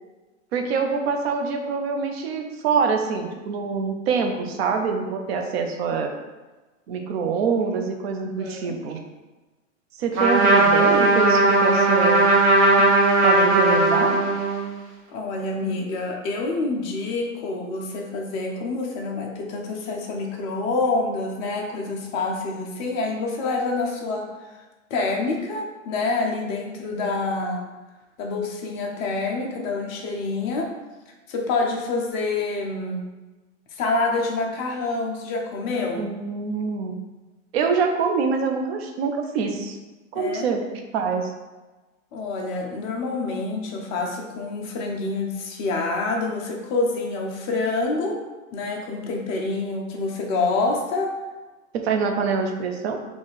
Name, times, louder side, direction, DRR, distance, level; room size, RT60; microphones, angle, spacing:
voice 1, 0.5-6.1 6.9-9.0 10.0-12.3 13.2-14.2 36.0-37.0 37.5-39.8 40.1-40.6 40.9-41.3 51.7-53.0, right 5 dB, 50° right, 4 dB, 0.7 m, -25 dB
voice 2, 8.4-8.8 15.1-24.5 24.9-27.6 28.2-30.7 31.3-33.1 33.8-36.1 40.1-40.5 42.1-48.2 48.5-51.1, left 3 dB, 15° left, 0 dB, 0.3 m, -27 dB
Trumpet, 10.1-14.7, right 2 dB, 35° right, 1.0 m, -18 dB
3.7 x 2.4 x 4.0 m, 1.2 s
hypercardioid pair, 105°, 39 cm